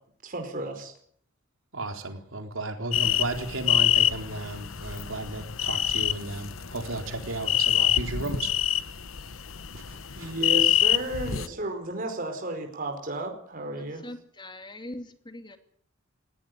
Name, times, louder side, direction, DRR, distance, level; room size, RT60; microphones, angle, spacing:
voice 1, 0.2-1.0 10.1-14.1, right 2 dB, 45° right, 4 dB, 4.7 m, -33 dB
voice 2, 1.7-8.5 9.7-10.3, right 2 dB, 80° right, 5 dB, 3.9 m, -34 dB
sound 1, 2.9-11.5, left 11 dB, 85° left, 1.0 m, -26 dB
voice 3, 14.0-15.6, left 1 dB, 25° left, 7 dB, 2.6 m, -41 dB
20.0 x 17.5 x 9.6 m, 0.63 s
head